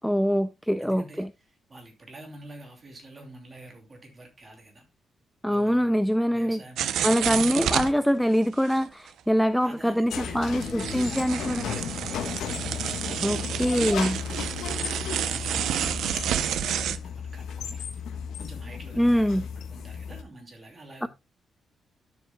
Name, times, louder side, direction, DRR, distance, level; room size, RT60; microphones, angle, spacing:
voice 1, 0.0-1.3 5.4-6.6 7.0-11.7 13.2-14.2 19.0-19.4 21.0-21.1, equal, ahead, 0.3 m, -24 dB
voice 2, 0.8-4.8 5.5-7.6 9.6-12.2 14.7-16.2 16.7-17.8 18.4-21.1, right 1 dB, 25° right, 2.9 m, -47 dB
sound 1, 6.8-7.9 8.7-8.8 9.1-9.2 9.5-9.6 10.6-17.0, right 10 dB, 85° right, 0.6 m, -30 dB
sound 2, 10.1-20.2, left 7 dB, 90° left, 1.1 m, -34 dB
12.0 x 7.2 x 2.2 m
cardioid pair, 150°, 0 cm